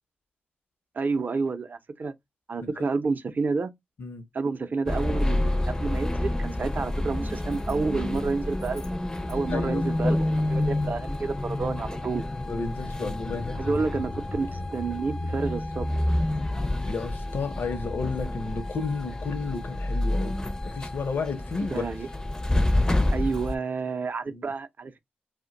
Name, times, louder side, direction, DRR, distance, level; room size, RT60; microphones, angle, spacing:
voice 1, 0.9-2.1 2.5-3.7 4.3-8.8 9.3-12.3 13.6-15.9 21.6-22.1 23.1-25.0, right 4 dB, 55° right, 0.5 m, -29 dB
sound 1, 4.9-23.6, left 1 dB, 15° left, 0.4 m, -28 dB
voice 2, 9.5-10.0 12.5-13.6 16.8-20.4 20.7-21.9 24.3-24.5, left 4 dB, 70° left, 0.6 m, -32 dB
2.5 x 2.2 x 3.7 m
cardioid pair, 60°, 4 cm